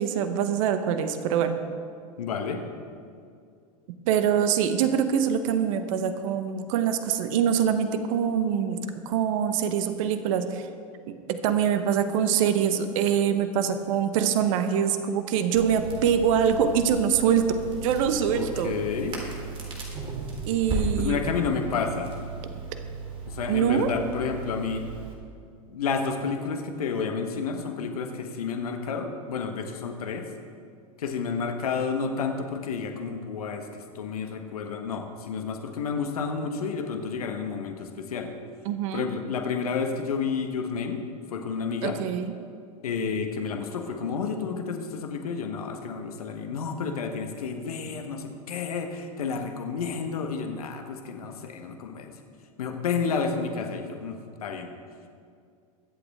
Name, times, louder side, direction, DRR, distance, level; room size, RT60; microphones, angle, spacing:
voice 1, 0.0-1.6 4.1-8.8 9.0-10.7 11.1-17.6 17.8-18.7 20.5-21.2 23.5-23.9 38.6-39.1 41.8-42.3, right 8 dB, 65° right, 9 dB, 1.1 m, -24 dB
voice 2, 2.2-2.6 18.3-19.2 21.0-22.1 23.2-24.9 25.7-30.3 31.0-38.3 38.9-41.0 41.3-42.0 42.8-52.1 52.6-54.7, left 5 dB, 80° left, 5 dB, 1.3 m, -30 dB
Crackle, 15.5-25.1, right 3 dB, 30° right, 3.8 m, -35 dB
22.5 x 8.1 x 3.6 m, 2.3 s
hypercardioid pair, 95°, 19 cm